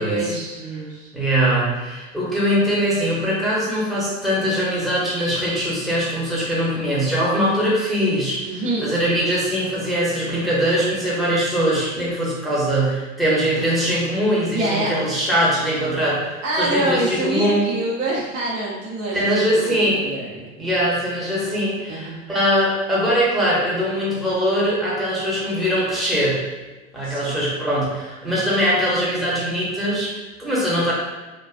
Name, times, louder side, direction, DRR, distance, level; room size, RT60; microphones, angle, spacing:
voice 1, 0.0-1.1 8.5-8.9 14.5-15.0 16.4-20.6 21.9-22.2 27.0-27.3, right 2 dB, 70° right, -4 dB, 0.9 m, -26 dB
voice 2, 1.1-8.5 8.8-17.7 19.1-20.0 20.6-26.4 26.9-30.9, equal, ahead, -7 dB, 0.7 m, -21 dB
2.4 x 2.3 x 2.4 m, 1.2 s
hypercardioid pair, 90°, 38 cm